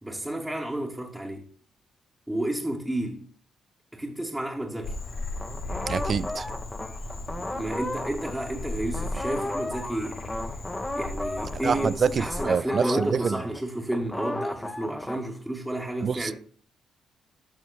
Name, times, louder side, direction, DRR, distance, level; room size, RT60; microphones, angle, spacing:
voice 1, 0.0-1.5 2.3-3.3 3.9-5.0 7.5-10.2 11.0-16.3, right 1 dB, 10° right, 1.7 m, -31 dB
Frog, 4.8-12.4, left 2 dB, 45° left, 1.0 m, -36 dB
sound 1, 5.4-8.7 8.9-15.3, left 1 dB, 20° left, 1.5 m, -34 dB
voice 2, 5.9-6.5 11.6-13.4 16.0-16.3, right 6 dB, 50° right, 0.3 m, -26 dB
14.0 x 6.1 x 2.5 m
hypercardioid pair, 45°, 0 cm